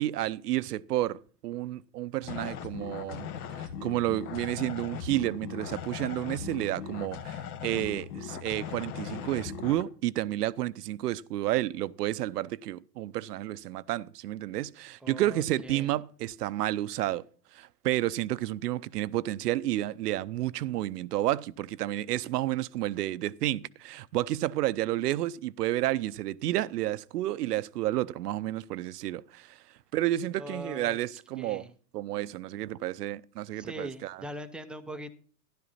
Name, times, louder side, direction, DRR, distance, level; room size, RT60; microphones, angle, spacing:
voice 1, 0.0-3.3 3.6-17.2 17.5-29.6 29.9-31.7 31.9-34.2, right 14 dB, 70° right, 0.7 m, -31 dB
sound 1, 2.2-9.8, left 8 dB, 60° left, 1.7 m, -39 dB
voice 2, 15.0-16.0 30.4-31.0 31.4-31.7 33.6-35.1, right 1 dB, ahead, 0.5 m, -41 dB
13.0 x 11.5 x 4.1 m
hypercardioid pair, 125°, 49 cm